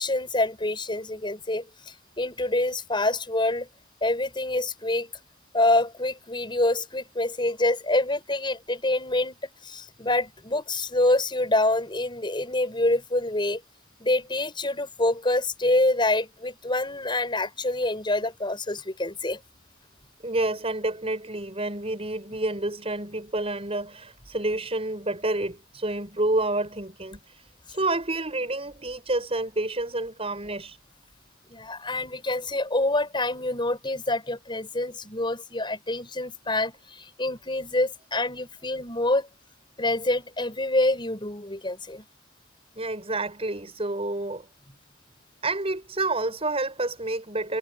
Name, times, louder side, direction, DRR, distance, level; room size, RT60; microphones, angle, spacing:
voice 1, 0.0-3.7 4.0-5.1 5.5-9.4 9.6-13.6 14.0-19.4 31.5-39.3 39.8-42.0, left 2 dB, 25° left, 6.6 m, -26 dB
voice 2, 20.2-30.8 42.8-44.5 45.4-47.6, right 2 dB, 30° right, 7.2 m, -29 dB
head